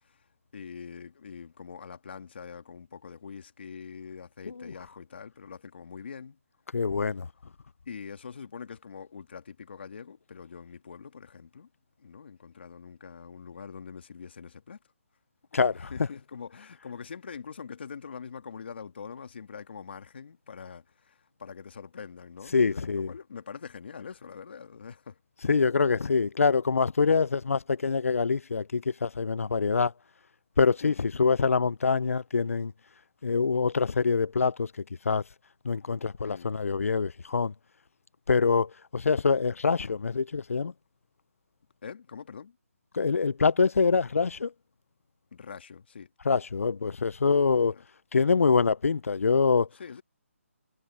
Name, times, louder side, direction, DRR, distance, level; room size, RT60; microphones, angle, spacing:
voice 1, 0.5-6.4 7.9-11.7 12.0-14.8 15.7-25.2 30.8-31.1 36.2-36.5 41.8-42.6 45.3-46.1 47.7-47.9 49.7-50.0, left 6 dB, 50° left, 2.1 m, -44 dB
voice 2, 6.7-7.3 15.5-15.9 22.5-23.1 25.5-29.9 30.6-32.7 33.2-34.7 35.1-35.2 35.6-37.5 38.3-40.7 42.9-44.5 46.3-47.7 48.1-49.7, left 5 dB, 75° left, 0.6 m, -25 dB
hypercardioid pair, 170°, 8 cm